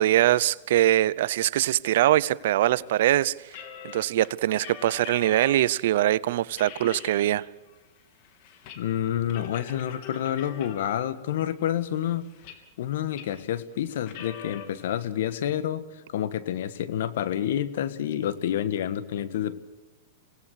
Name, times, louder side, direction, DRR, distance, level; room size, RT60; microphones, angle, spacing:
voice 1, 0.0-3.6 3.8-7.4, right 13 dB, 70° right, 0.7 m, -23 dB
sound 1, 3.5-5.7 6.1-6.2 6.5-7.3 7.7-8.8 9.1-11.1 11.7-12.8 13.1-13.4 14.0-14.7, left 8 dB, 55° left, 3.2 m, -43 dB
voice 2, 8.7-12.3 12.8-19.6, left 10 dB, 70° left, 1.5 m, -29 dB
26.5 x 18.0 x 6.6 m
hypercardioid pair, 125°, 0 cm